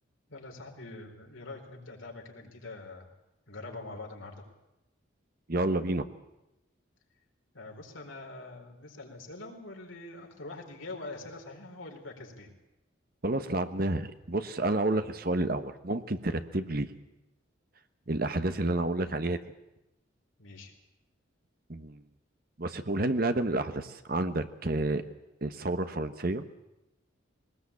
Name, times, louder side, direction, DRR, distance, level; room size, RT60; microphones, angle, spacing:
voice 1, 0.3-3.1 3.5-4.5 7.5-12.5 20.4-20.7, left 2 dB, 85° left, 2 dB, 4.4 m, -44 dB
voice 2, 5.5-6.1 13.2-16.9 18.1-19.4 21.7-22.0 22.6-25.0 25.4-26.5, right 2 dB, 50° right, 9 dB, 1.3 m, -30 dB
21.0 x 19.5 x 8.6 m, 0.92 s
head